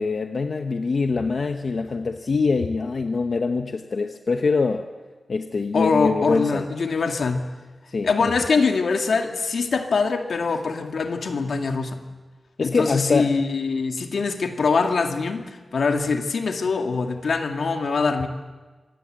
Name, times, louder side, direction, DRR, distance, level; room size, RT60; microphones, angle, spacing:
voice 1, 0.0-4.9 5.3-6.7 7.9-8.3 12.6-13.4, left 4 dB, 60° left, 6 dB, 1.0 m, -24 dB
voice 2, 5.7-7.5 8.0-12.0 12.6-15.4 15.7-18.3, left 4 dB, 80° left, 4 dB, 2.2 m, -23 dB
26.0 x 19.5 x 7.7 m, 1.3 s
wide cardioid pair, 130°, 0 cm